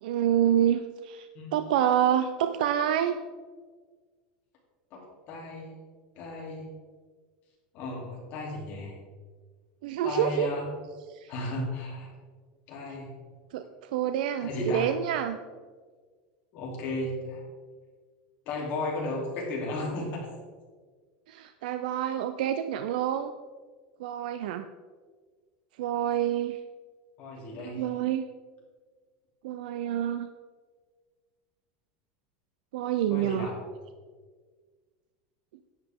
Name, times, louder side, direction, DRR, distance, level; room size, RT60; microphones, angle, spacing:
voice 1, 0.0-3.2 9.8-10.5 11.1-11.3 13.5-15.4 21.3-23.3 24.0-24.7 25.8-26.6 27.6-28.2 29.4-30.3 32.7-33.5, right 10 dB, 85° right, 9 dB, 0.5 m, -27 dB
voice 2, 4.9-5.7 6.2-6.6 7.7-8.9 10.0-10.6 11.3-12.1 12.7-13.1 14.4-14.9 16.5-17.4 18.4-20.3 27.2-27.8 33.1-33.5, left 2 dB, 40° left, -3 dB, 3.2 m, -34 dB
11.0 x 8.1 x 3.7 m, 1.5 s
supercardioid pair, 165°, 5 cm